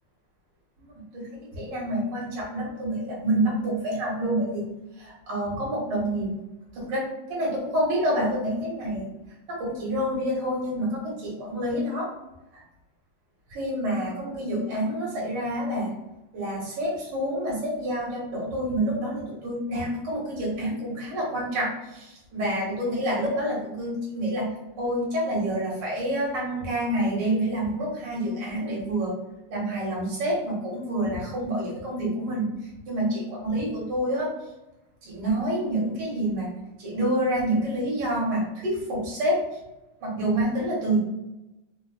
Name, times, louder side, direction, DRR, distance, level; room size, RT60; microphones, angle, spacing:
voice 1, 0.8-1.3 1.5-4.6 5.0-6.3 6.7-9.1 9.5-12.1 12.5-12.6 13.5-15.9 16.3-29.1 29.5-32.5 32.8-34.3 35.0-36.5 36.8-39.4 40.0-41.0, right 1 dB, 60° right, -5 dB, 1.8 m, -28 dB
4.0 x 2.4 x 2.3 m, 0.98 s
omnidirectional pair, 2.3 m